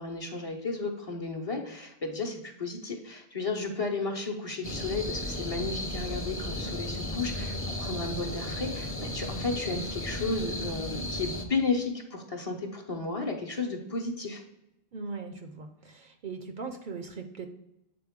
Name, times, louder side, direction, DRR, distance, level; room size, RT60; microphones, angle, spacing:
voice 1, 0.0-14.4, left 3 dB, 35° left, 0 dB, 0.9 m, -33 dB
sound 1, 4.6-11.4, left 1 dB, 15° left, 0.5 m, -35 dB
voice 2, 14.9-17.5, right 4 dB, 60° right, 6 dB, 0.6 m, -39 dB
7.7 x 4.0 x 3.6 m, 0.90 s
omnidirectional pair, 1.1 m